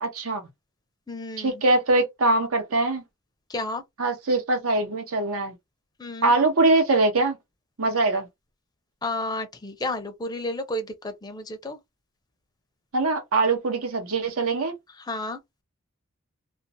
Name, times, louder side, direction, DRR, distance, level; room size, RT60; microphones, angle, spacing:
voice 1, 0.0-0.4 1.4-3.0 4.0-5.5 6.2-7.4 7.8-8.3 12.9-14.7, right 2 dB, 75° right, 0.9 m, -22 dB
voice 2, 1.1-1.6 3.5-3.8 6.0-6.3 9.0-11.8 15.1-15.4, left 2 dB, 20° left, 0.5 m, -31 dB
2.5 x 2.0 x 2.9 m
head